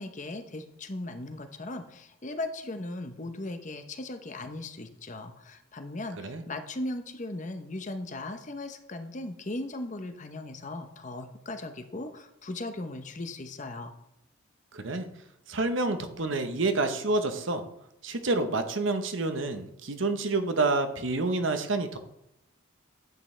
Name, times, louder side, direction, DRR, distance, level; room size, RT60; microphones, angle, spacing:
voice 1, 0.0-13.9, left 2 dB, 35° left, 7 dB, 0.8 m, -38 dB
voice 2, 14.7-15.1 15.5-17.6 18.0-22.0, right 3 dB, 70° right, 8 dB, 1.0 m, -28 dB
10.5 x 8.7 x 3.3 m, 0.80 s
head